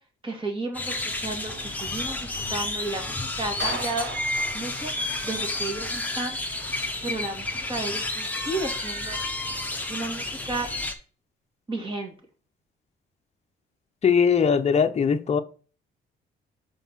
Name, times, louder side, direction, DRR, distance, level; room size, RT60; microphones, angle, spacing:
voice 1, 0.2-0.9 1.2-4.1 4.5-4.9 5.2-6.4 7.0-9.2 9.9-10.7 11.7-12.1, right 2 dB, 25° right, 2 dB, 2.3 m, -33 dB
sound 1, 0.7-10.9, left 2 dB, 10° left, 1.1 m, -31 dB
Clapping, 3.6-5.6, right 4 dB, 75° right, 1.4 m, -36 dB
voice 2, 14.0-15.4, left 6 dB, 35° left, 7 dB, 0.7 m, -20 dB
5.3 x 4.6 x 5.7 m, 0.39 s
cardioid pair, 90°, 20 cm